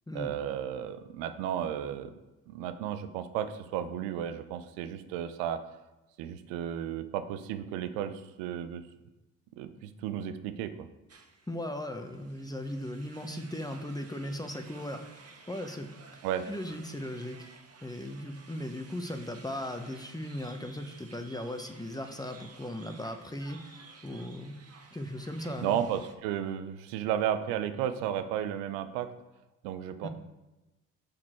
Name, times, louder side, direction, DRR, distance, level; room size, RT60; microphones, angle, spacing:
voice 1, 0.1-2.2 2.5-5.6 6.2-8.8 9.6-10.9 16.2-16.4 25.6-29.1 29.6-30.1, right 10 dB, 80° right, 10 dB, 0.8 m, -33 dB
sound 1, 11.1-26.1, right 4 dB, 35° right, 1.5 m, -54 dB
voice 2, 11.5-17.5 17.8-24.6 24.9-25.8 30.0-30.1, left 1 dB, 10° left, 6 dB, 1.2 m, -38 dB
6.7 x 5.9 x 4.5 m, 1.0 s
hypercardioid pair, 55°, 41 cm